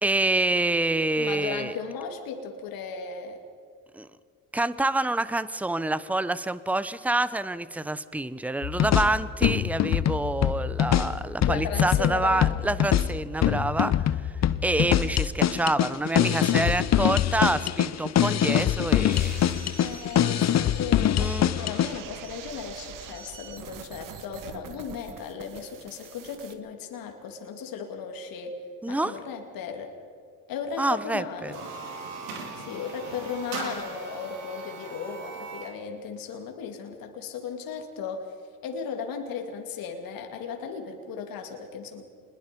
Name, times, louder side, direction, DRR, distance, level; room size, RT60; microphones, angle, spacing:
voice 1, 0.0-1.7 3.9-4.1 4.5-13.9 14.6-19.4 21.2-21.5 28.8-29.1 30.8-31.5, right 2 dB, 5° right, 15 dB, 0.9 m, -27 dB
voice 2, 1.2-3.4 11.5-12.6 19.8-28.6 28.9-29.9 30.5-31.7 32.6-38.3 38.6-42.0, left 6 dB, 65° left, 4 dB, 2.7 m, -36 dB
sound 1, 8.6-22.0, left 10 dB, 45° left, 0.9 m, -24 dB
sound 2, 19.1-26.5, right 7 dB, 60° right, 1.9 m, -44 dB
sound 3, 31.4-35.8, right 4 dB, 85° right, 4.3 m, -39 dB
26.0 x 21.0 x 5.4 m, 2.1 s
supercardioid pair, 75°, 36 cm